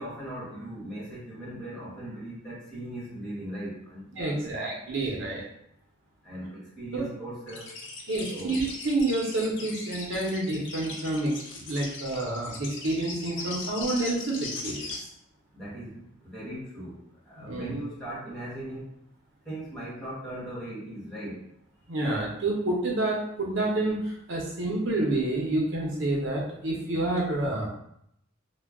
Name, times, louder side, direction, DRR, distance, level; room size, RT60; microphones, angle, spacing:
voice 1, 0.0-5.5 6.2-7.7 8.3-8.7 11.8-11.9 15.5-18.9 19.4-21.4, right 1 dB, ahead, -9 dB, 1.0 m, -39 dB
voice 2, 4.1-5.4 6.9-7.0 8.1-11.3 11.6-14.9 17.4-17.8 21.9-27.7, right 2 dB, 65° right, -3 dB, 0.6 m, -28 dB
sound 1, 7.5-15.0, left 3 dB, 60° left, 0.5 m, -39 dB
2.2 x 2.1 x 3.4 m, 0.73 s
head